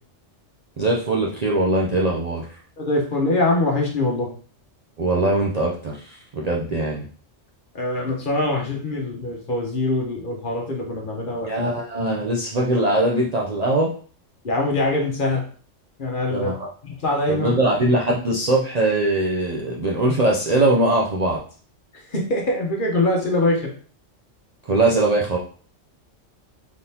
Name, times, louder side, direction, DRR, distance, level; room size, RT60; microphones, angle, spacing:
voice 1, 0.8-2.5 5.0-7.1 11.5-13.9 16.3-16.7 17.3-21.4 24.7-25.4, right 2 dB, 45° right, -3 dB, 0.5 m, -21 dB
voice 2, 2.8-4.3 7.7-11.7 14.4-15.4 16.0-16.5 16.8-17.5 22.1-23.6, left 2 dB, 45° left, -1 dB, 1.1 m, -23 dB
4.1 x 3.6 x 2.8 m, 0.42 s
omnidirectional pair, 1.3 m